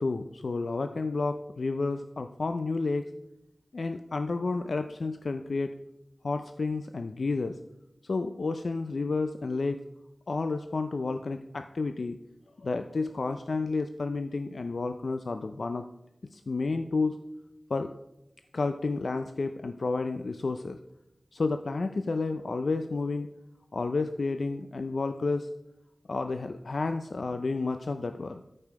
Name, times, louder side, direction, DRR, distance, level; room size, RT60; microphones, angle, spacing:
voice 1, 0.0-3.1 3.7-5.7 6.2-7.6 8.0-9.8 10.3-12.2 12.6-15.8 16.3-17.2 17.7-18.0 18.5-20.8 21.3-23.3 23.7-25.5 26.1-28.4, left 3 dB, 80° left, 8 dB, 0.5 m, -31 dB
13.5 x 5.5 x 4.6 m, 0.88 s
wide cardioid pair, 55°, 0 cm